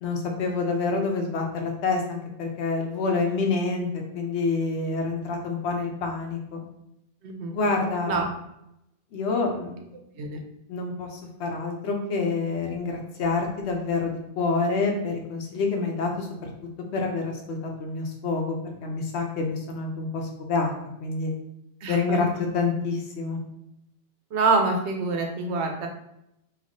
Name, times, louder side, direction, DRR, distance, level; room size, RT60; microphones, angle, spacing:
voice 1, 0.0-6.6 7.5-8.2 9.1-9.8 10.1-10.2 10.7-16.5 16.9-21.3 21.9-22.3 22.5-23.4, left 4 dB, 90° left, 2 dB, 1.0 m, -27 dB
voice 2, 7.2-7.5 8.1-8.3 10.2-10.4 21.8-22.2 24.3-25.9, right 3 dB, 85° right, 3 dB, 1.0 m, -25 dB
3.4 x 2.3 x 3.6 m, 0.81 s
omnidirectional pair, 1.1 m